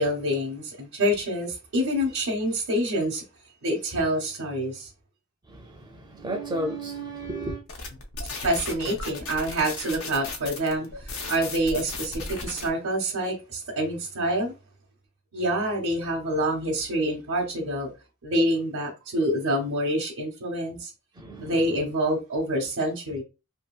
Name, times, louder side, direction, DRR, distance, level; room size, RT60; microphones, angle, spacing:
voice 1, 0.0-3.2 3.6-4.9 8.4-14.5 15.3-17.9 18.2-20.9 21.4-23.2, right 1 dB, 80° right, 0.7 m, -27 dB
voice 2, 5.5-7.6 21.2-21.6, right 1 dB, 20° right, 0.4 m, -33 dB
sound 1, 7.7-12.7, left 3 dB, 80° left, 0.7 m, -36 dB
2.7 x 2.6 x 2.3 m
head